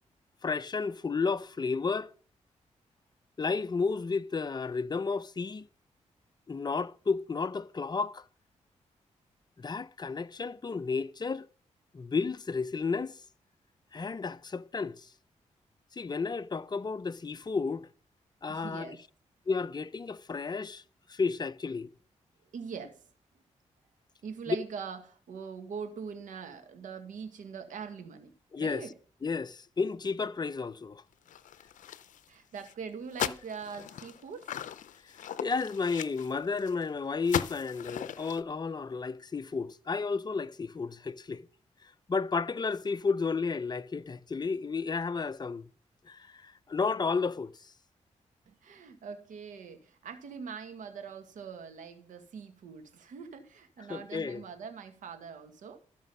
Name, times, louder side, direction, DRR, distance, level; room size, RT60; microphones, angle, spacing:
voice 1, 0.4-2.1 3.4-5.7 6.5-8.2 9.6-11.5 11.9-13.2 13.9-15.1 15.9-17.9 18.4-19.0 19.5-20.8 21.1-21.9 24.5-24.6 28.5-28.8 29.2-31.0 35.2-41.4 42.1-45.7 46.1-47.5 53.9-54.4, left 4 dB, 35° left, 0.7 m, -32 dB
voice 2, 18.5-19.0 22.5-23.1 24.2-28.3 28.6-28.9 32.3-34.5 35.3-35.4 48.5-55.8, right 6 dB, 85° right, 1.7 m, -42 dB
sound 1, 31.3-32.3 32.6-32.7 33.1-36.8 37.2-38.4, left 10 dB, 80° left, 0.6 m, -38 dB
13.5 x 6.2 x 5.5 m
cardioid pair, 65°, 13 cm